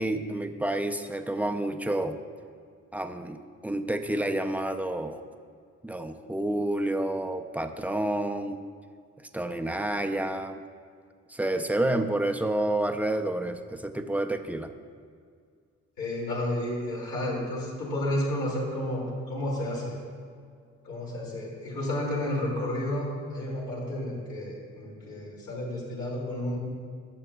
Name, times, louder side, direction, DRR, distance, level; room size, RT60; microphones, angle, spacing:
voice 1, 0.0-2.2 2.9-5.2 5.8-8.6 9.3-10.6 11.3-14.7, right 1 dB, 5° right, 6 dB, 0.5 m, -29 dB
voice 2, 16.0-20.0 20.8-26.6, left 1 dB, 75° left, -5 dB, 2.4 m, -31 dB
17.0 x 6.7 x 2.3 m, 2.1 s
cardioid pair, 90°, 30 cm